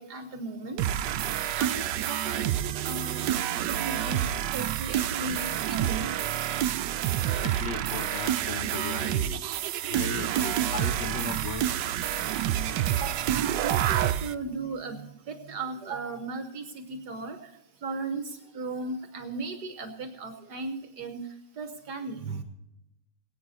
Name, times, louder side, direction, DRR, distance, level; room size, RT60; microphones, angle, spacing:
voice 1, 0.0-6.1 10.3-10.4 12.9-17.5 17.8-21.2 21.6-22.4, right 3 dB, 70° right, 7 dB, 1.6 m, -37 dB
sound 1, 0.8-14.3, right 11 dB, 85° right, 1.3 m, -28 dB
voice 2, 7.4-9.5 9.9-11.7, left 5 dB, 45° left, 9 dB, 1.0 m, -37 dB
22.5 x 8.6 x 4.1 m, 0.89 s
omnidirectional pair, 1.9 m